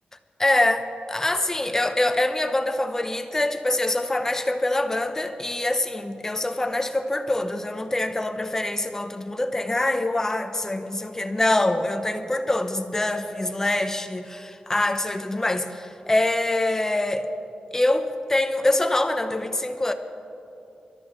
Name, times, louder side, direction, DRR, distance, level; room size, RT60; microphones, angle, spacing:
voice 1, 0.4-0.8 1.1-17.3 17.7-19.9, left 2 dB, 15° left, 8 dB, 0.8 m, -24 dB
25.0 x 13.5 x 3.8 m, 2.9 s
wide cardioid pair, 145°, 3 cm